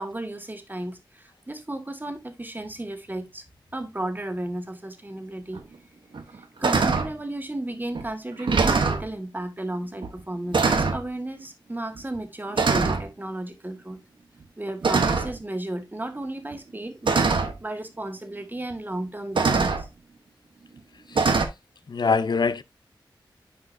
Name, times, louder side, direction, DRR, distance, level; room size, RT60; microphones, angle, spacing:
voice 1, 0.0-3.4 3.7-5.6 6.3-14.0 14.6-17.3 17.6-19.9, right 1 dB, 20° right, 1.5 m, -34 dB
sound 1, 5.5-5.6 6.1-6.4 6.6-7.1 7.9-8.1 8.4-9.1 10.0-10.2 10.5-11.0 12.0-12.2 12.6-13.0 14.8-15.4 16.5-16.6 17.1-17.5 18.7-18.8 19.4-19.8 21.2-21.5, right 4 dB, 75° right, 1.0 m, -22 dB
voice 2, 21.9-22.6, left 4 dB, 60° left, 0.5 m, -23 dB
9.4 x 4.7 x 2.6 m
wide cardioid pair, 60°, 8 cm